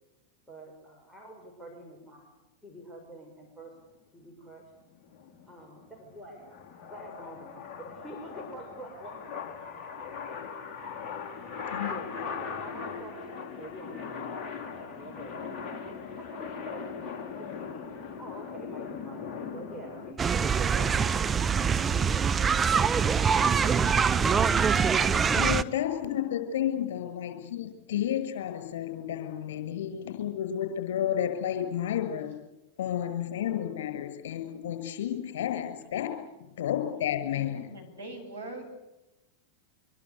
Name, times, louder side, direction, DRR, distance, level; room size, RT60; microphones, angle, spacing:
voice 1, 0.5-2.3 2.6-3.7 4.1-4.6 5.5-6.4 6.8-9.2 9.6-9.7 11.3-15.8 16.2-17.0 17.4-17.9 18.2-21.3 21.8-23.3 24.9-25.3 25.6-26.2, right 1 dB, ahead, -1 dB, 6.3 m, -47 dB
sound 1, 4.8-20.1, left 6 dB, 25° left, 5.1 m, -39 dB
sound 2, 20.2-25.6, right 6 dB, 20° right, 0.9 m, -24 dB
voice 2, 25.4-32.3 32.8-36.1 36.6-37.8, left 10 dB, 55° left, 6 dB, 6.6 m, -31 dB
voice 3, 37.3-38.7, right 2 dB, 80° right, 2 dB, 7.9 m, -42 dB
25.0 x 23.5 x 8.4 m, 0.98 s
figure-of-eight pair, 90°, 0 cm